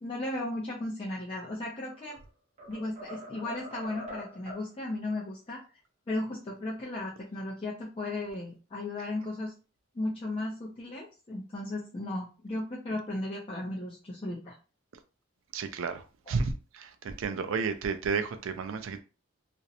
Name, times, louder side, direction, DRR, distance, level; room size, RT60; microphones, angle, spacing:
voice 1, 0.0-2.2 2.7-5.6 6.1-9.5 9.9-14.6 16.3-16.4, left 2 dB, 25° left, 0.5 m, -35 dB
sound 1, 1.8-2.2 2.6-4.7, equal, 35° right, 0.8 m, -44 dB
voice 2, 15.5-19.0, right 5 dB, 70° right, 0.4 m, -32 dB
2.5 x 2.0 x 2.7 m
head